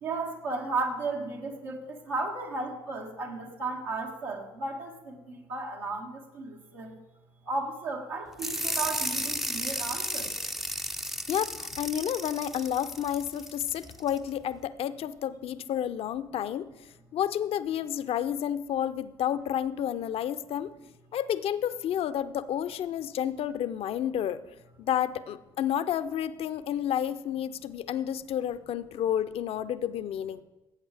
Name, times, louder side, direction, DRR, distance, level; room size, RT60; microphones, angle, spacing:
voice 1, 0.0-6.9 7.5-10.3, right 3 dB, 80° right, -3 dB, 2.1 m, -34 dB
sound 1, 8.4-14.2, equal, ahead, 0.5 m, -34 dB
voice 2, 11.3-16.7 17.1-20.7 21.1-24.4 24.8-30.4, left 10 dB, 55° left, 13 dB, 0.6 m, -30 dB
18.0 x 8.5 x 3.4 m, 1.1 s
hypercardioid pair, 50°, 12 cm